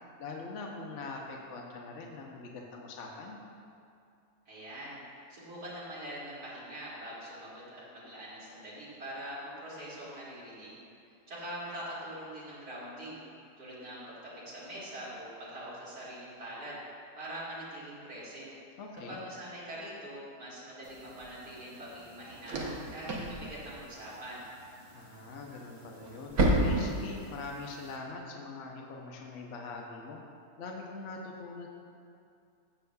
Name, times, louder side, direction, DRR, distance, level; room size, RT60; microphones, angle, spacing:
voice 1, 0.2-3.4 18.8-19.2 24.9-30.2 30.6-31.7, left 3 dB, 55° left, -1 dB, 1.0 m, -43 dB
voice 2, 4.5-5.0 5.3-10.8 11.3-13.2 13.6-16.8 17.2-18.5 19.1-24.4, right 1 dB, 85° right, -9 dB, 3.1 m, -43 dB
sound 1, 20.8-28.0, right 1 dB, 65° right, 1.5 m, -34 dB
16.5 x 6.8 x 2.3 m, 2.4 s
omnidirectional pair, 1.7 m